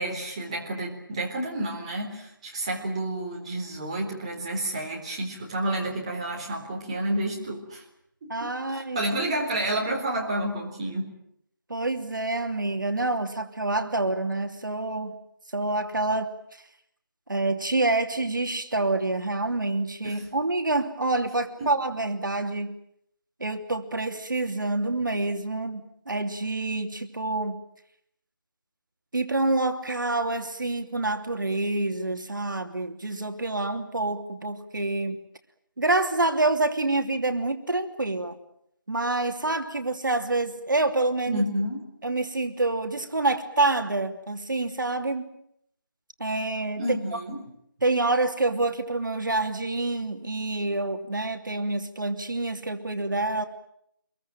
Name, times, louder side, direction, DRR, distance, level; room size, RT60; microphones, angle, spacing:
voice 1, 0.0-7.8 8.2-11.1 20.0-20.3 21.6-21.7 41.3-41.8 46.8-47.4, right 1 dB, 15° right, -1 dB, 3.9 m, -30 dB
voice 2, 8.3-9.0 11.7-15.2 15.5-16.3 17.3-22.7 23.4-25.8 26.1-27.6 29.1-35.2 35.8-38.4 38.9-41.4 42.0-45.3 46.2-46.8 47.1-47.2 47.8-53.4, right 2 dB, 65° right, 6 dB, 3.0 m, -27 dB
26.5 x 22.5 x 9.1 m, 0.73 s
figure-of-eight pair, 170°, 11 cm